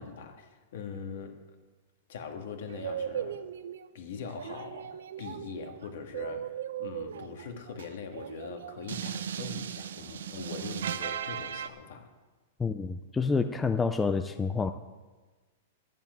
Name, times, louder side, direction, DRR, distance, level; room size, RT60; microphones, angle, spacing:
voice 1, 0.0-1.4 2.1-3.4 3.9-12.1, left 6 dB, 60° left, 5 dB, 1.9 m, -42 dB
sound 1, 2.7-3.9 4.3-11.7, right 9 dB, 90° right, 0.7 m, -37 dB
voice 2, 12.6-14.7, left 4 dB, 10° left, 8 dB, 0.4 m, -28 dB
12.5 x 7.4 x 9.2 m, 1.3 s
supercardioid pair, 170°, 0 cm